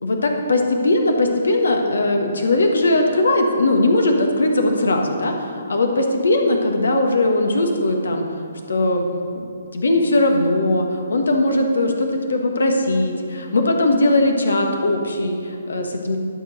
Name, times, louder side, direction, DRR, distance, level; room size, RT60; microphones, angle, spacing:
voice 1, 0.0-8.3 8.7-9.1 9.4-16.2, left 2 dB, 75° left, 3 dB, 1.4 m, -19 dB
11.5 x 5.2 x 6.5 m, 2.4 s
figure-of-eight pair, 135°, 0 cm